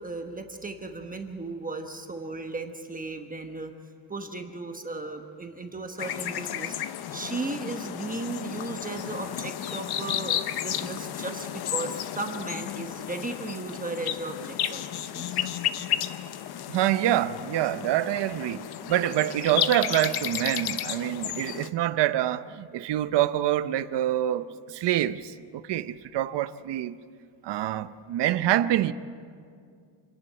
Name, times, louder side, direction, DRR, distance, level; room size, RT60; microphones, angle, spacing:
voice 1, 0.0-3.7 4.1-6.8 7.1-15.5, right 3 dB, 15° right, 1.1 m, -36 dB
sound 1, 6.0-21.7, left 10 dB, 55° left, 0.9 m, -33 dB
voice 2, 16.7-27.0 27.4-28.9, right 13 dB, 60° right, 0.8 m, -26 dB
27.5 x 11.0 x 9.2 m
cardioid pair, 145°, 47 cm